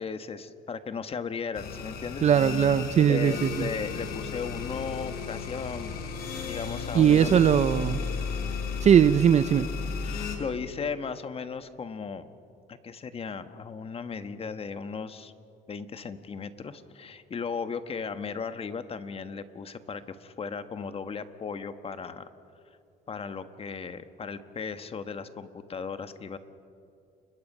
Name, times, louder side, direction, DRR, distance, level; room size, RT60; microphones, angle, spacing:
voice 1, 0.0-2.3 3.1-6.1 6.5-7.5 10.0-12.3 12.7-15.3 15.7-22.2 23.1-26.4, left 5 dB, 35° left, 10 dB, 1.3 m, -36 dB
sound 1, 1.5-10.4, left 5 dB, 65° left, 4.1 m, -34 dB
voice 2, 2.2-3.7 6.9-8.0 8.8-9.7, right 8 dB, 40° right, 15 dB, 0.6 m, -20 dB
30.0 x 22.0 x 5.5 m, 2.6 s
cardioid pair, 110°, 17 cm